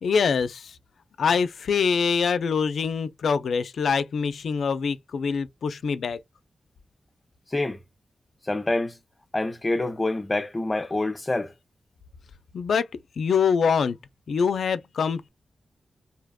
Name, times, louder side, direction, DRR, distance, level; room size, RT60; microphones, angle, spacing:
voice 1, 0.0-0.8 1.2-6.2 12.5-12.9 13.2-14.0 14.3-15.3, left 6 dB, 85° left, 0.3 m, -24 dB
voice 2, 8.5-9.0 9.3-11.5, left 2 dB, 20° left, 0.4 m, -26 dB
2.7 x 2.1 x 2.2 m
wide cardioid pair, 105°, 0 cm